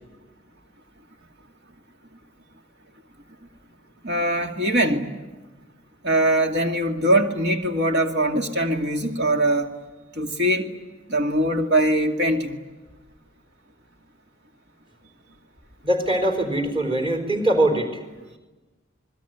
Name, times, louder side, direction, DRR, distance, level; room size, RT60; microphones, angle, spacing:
voice 1, 4.0-5.1 6.0-9.7 10.2-10.7 11.1-12.6, right 1 dB, 55° right, 4 dB, 2.2 m, -22 dB
voice 2, 15.8-17.9, right 1 dB, 25° right, 6 dB, 4.1 m, -22 dB
27.5 x 21.5 x 9.3 m, 1.2 s
head